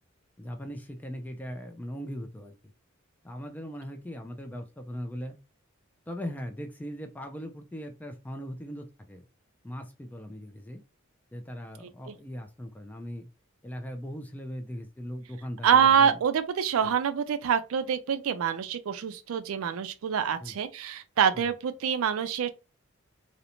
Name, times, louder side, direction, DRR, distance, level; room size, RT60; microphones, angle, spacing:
voice 1, 0.4-2.5 3.2-5.4 6.1-9.2 9.6-10.8 11.3-13.3 13.6-16.2 16.8-16.9 20.4-20.5 21.3-21.5, equal, 10° left, 0.3 m, -39 dB
voice 2, 15.6-22.5, right 7 dB, 85° right, 0.4 m, -25 dB
2.5 x 2.1 x 2.8 m
head